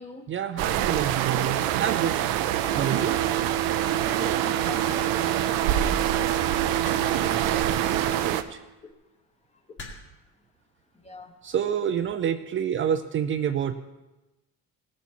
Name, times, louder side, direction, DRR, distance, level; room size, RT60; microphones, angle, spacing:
voice 1, 0.3-2.2 2.7-3.2 7.2-8.6 11.4-13.7, right 9 dB, 35° right, 8 dB, 0.5 m, -28 dB
sound 1, 0.6-8.4, right 12 dB, 90° right, 0.7 m, -26 dB
sound 2, 2.6-8.6, right 10 dB, 10° right, 0.8 m, -31 dB
voice 2, 2.7-3.0 3.8-5.1 6.8-8.0 8.3-8.4 8.8-8.9 10.9-11.4, left 3 dB, 20° left, 5 dB, 1.2 m, -43 dB
sound 3, 6.8-7.4 8.6-8.8 9.8-10.3 11.2-11.5, left 2 dB, 35° left, 2.4 m, -43 dB
18.0 x 7.0 x 4.6 m, 1.0 s
cardioid pair, 125°, 33 cm